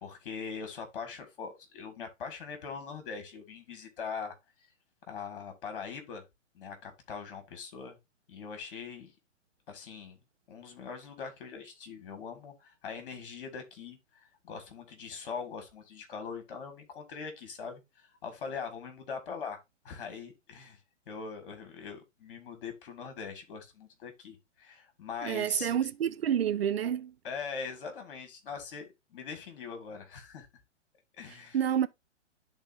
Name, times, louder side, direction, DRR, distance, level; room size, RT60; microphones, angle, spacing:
voice 1, 0.0-4.4 5.1-6.2 6.5-8.0 8.3-9.1 9.7-10.2 10.5-20.8 21.1-25.8 27.2-30.5 31.2-31.6, left 5 dB, 45° left, 1.9 m, -42 dB
voice 2, 25.2-27.1 31.3-31.9, right 9 dB, 55° right, 0.5 m, -29 dB
11.0 x 3.9 x 2.6 m
figure-of-eight pair, 120°, 37 cm